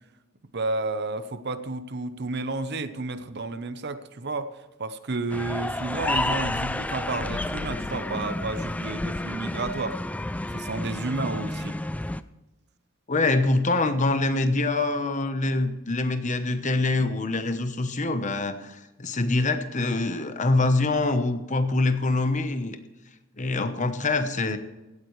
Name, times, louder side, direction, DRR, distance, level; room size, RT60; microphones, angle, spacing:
voice 1, 0.5-10.0 10.5-11.8, right 3 dB, 50° right, 11 dB, 0.8 m, -31 dB
sound 1, 5.3-12.2, left 1 dB, 5° left, 0.3 m, -31 dB
Bird, 5.9-8.4, left 4 dB, 80° left, 0.5 m, -39 dB
voice 2, 13.1-22.8 23.4-24.6, left 2 dB, 35° left, 9 dB, 1.0 m, -25 dB
17.0 x 13.5 x 3.2 m, 1.1 s
head